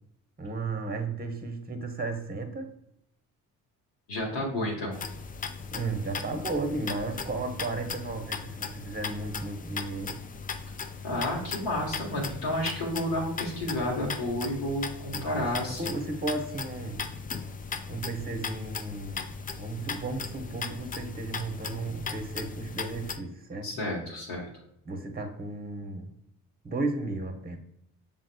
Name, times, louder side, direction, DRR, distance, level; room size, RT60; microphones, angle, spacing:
voice 1, 0.4-2.7 5.7-10.2 15.1-15.4 15.8-17.0 17.9-19.2 19.6-23.7 24.8-26.1 26.6-27.6, right 3 dB, 20° right, 5 dB, 0.9 m, -34 dB
voice 2, 4.1-5.0 11.0-15.8 23.6-24.5, left 1 dB, 80° left, -3 dB, 1.4 m, -31 dB
sound 1, 4.9-23.2, left 5 dB, 20° left, 0.3 m, -38 dB
6.5 x 3.6 x 2.2 m, 0.75 s
supercardioid pair, 55°, 41 cm